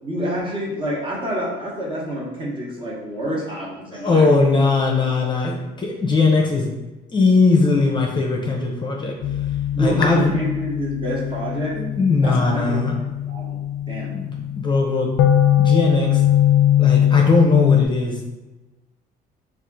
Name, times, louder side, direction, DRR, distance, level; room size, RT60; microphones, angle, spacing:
voice 1, 0.0-4.3 9.7-11.8 12.2-12.8 13.2-14.1, equal, 30° right, -4 dB, 1.2 m, -28 dB
voice 2, 3.9-6.7 7.1-9.1 9.8-10.3 11.7-12.9 14.1-15.1 15.6-16.2 16.8-18.2, left 3 dB, 25° left, 0 dB, 0.6 m, -19 dB
sound 1, 9.2-17.8, left 11 dB, 75° left, 0.4 m, -21 dB
3.5 x 2.5 x 3.7 m, 1.1 s
cardioid pair, 110°, 17 cm